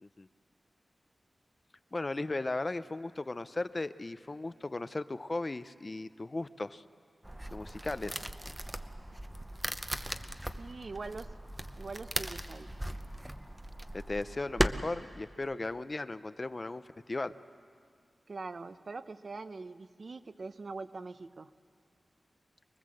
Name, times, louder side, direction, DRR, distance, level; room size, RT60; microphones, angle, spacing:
voice 1, 1.9-6.8 7.5-8.2 13.9-17.3, left 2 dB, 30° left, 13 dB, 0.5 m, -36 dB
sound 1, 7.2-14.7, right 1 dB, 10° right, 0.7 m, -37 dB
voice 2, 10.6-11.3 11.8-12.7 18.3-21.5, right 3 dB, 50° right, 11 dB, 0.7 m, -43 dB
24.5 x 21.0 x 7.7 m, 2.2 s
wide cardioid pair, 130°, 0 cm